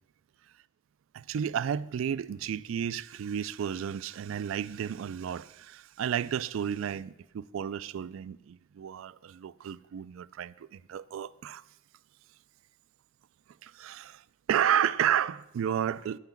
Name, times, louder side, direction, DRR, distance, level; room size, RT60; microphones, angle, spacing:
voice 1, 1.1-11.6 13.6-14.2 14.5-16.2, right 9 dB, 75° right, 0.3 m, -32 dB
9.9 x 5.8 x 7.1 m
head